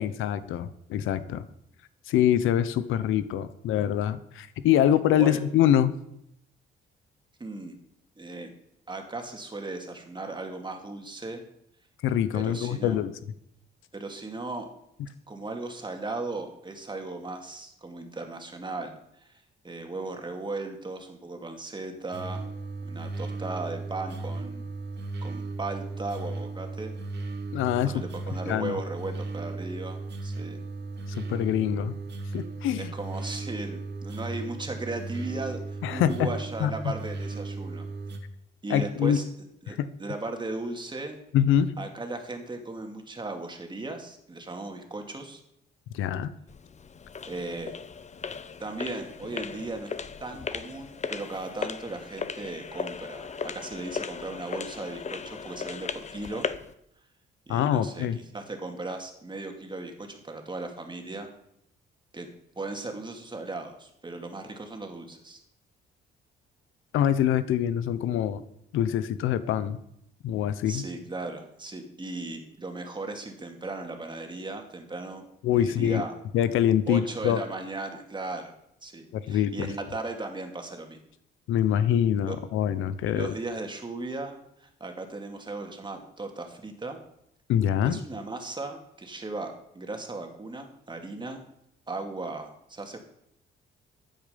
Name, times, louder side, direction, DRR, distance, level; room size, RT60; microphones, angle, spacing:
voice 1, 0.0-1.4 2.1-5.9 12.0-13.1 27.5-28.0 28.5-28.8 31.2-31.9 32.3-32.9 35.8-36.3 36.6-36.7 38.7-39.2 39.7-39.9 41.3-41.7 45.9-46.3 57.5-58.2 66.9-68.4 68.7-69.8 70.2-70.8 75.4-76.0 76.3-77.4 79.1-79.7 81.5-83.3 87.5-88.0, left 10 dB, 85° left, 14 dB, 0.9 m, -25 dB
voice 2, 7.4-7.8 8.2-8.5 8.9-11.4 12.3-13.0 13.9-14.7 15.3-18.9 19.2-19.4 19.6-22.4 22.8-24.7 25.2-26.9 27.8-30.6 32.8-37.8 38.6-39.2 39.6-41.2 41.8-45.4 47.3-47.7 48.6-49.9 50.2-56.5 57.5-61.3 62.1-62.3 62.6-65.4 70.7-75.2 75.6-76.1 76.9-78.5 78.8-81.0 82.3-82.4 83.0-87.0 87.8-91.4 91.9-93.0, right 2 dB, 25° right, 4 dB, 2.5 m, -37 dB
sound 1, 22.1-38.2, right 3 dB, 60° right, 2.1 m, -36 dB
sound 2, 46.5-56.7, left 6 dB, 35° left, 0.9 m, -37 dB
14.0 x 9.0 x 5.3 m, 0.76 s
cardioid pair, 90°, 20 cm